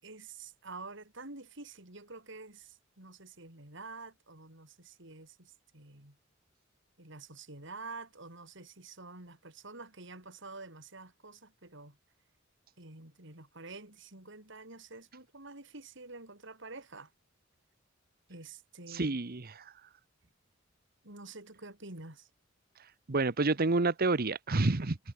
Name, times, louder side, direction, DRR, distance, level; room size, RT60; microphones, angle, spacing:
voice 1, 0.0-6.2 7.0-12.0 12.8-17.1 18.3-19.2 21.0-22.3, right 3 dB, 65° right, 6.6 m, -48 dB
voice 2, 18.9-19.6 23.1-25.0, right 3 dB, 50° right, 1.0 m, -29 dB
head